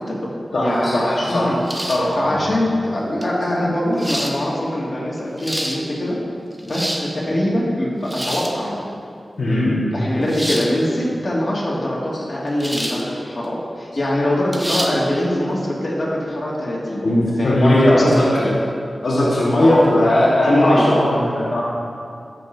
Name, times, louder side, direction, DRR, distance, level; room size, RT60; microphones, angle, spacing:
voice 1, 0.0-1.6 2.2-6.2 6.6-9.0 9.5-17.1 17.4-17.6 18.0-18.2 19.6-19.8 20.5-20.9, left 1 dB, 50° left, -6 dB, 2.1 m, -23 dB
voice 2, 0.5-1.6 1.9-2.4 5.6-5.7 9.4-9.7 17.0-18.5 19.0-21.6, left 1 dB, 90° left, -6 dB, 1.4 m, -17 dB
sound 1, 1.7-2.1 3.2-3.3 4.0-4.4 5.2-5.8 6.5-7.1 8.0-8.6 10.3-10.7 12.6-13.0 13.4-13.5 14.5-14.9, right 1 dB, 15° right, 0.9 m, -26 dB
13.5 x 6.4 x 2.7 m, 2.4 s
wide cardioid pair, 75°, 0 cm